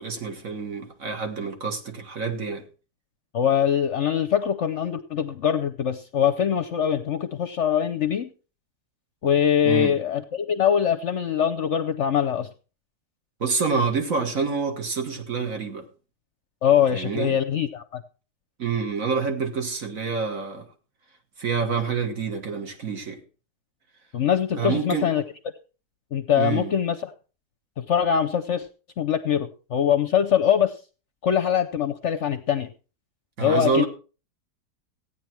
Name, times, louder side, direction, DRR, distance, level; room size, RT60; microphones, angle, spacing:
voice 1, 0.0-2.7 9.6-9.9 13.4-15.9 16.9-17.4 18.6-20.7 21.4-23.2 24.6-25.1 26.4-26.7 33.4-33.9, right 5 dB, 55° right, 2.1 m, -27 dB
voice 2, 3.3-8.3 9.2-12.5 16.6-18.0 24.1-25.2 26.1-27.1 27.8-28.7 29.0-30.7 31.2-32.7 33.4-33.8, left 9 dB, 55° left, 0.9 m, -23 dB
15.0 x 9.4 x 4.5 m
omnidirectional pair, 1.8 m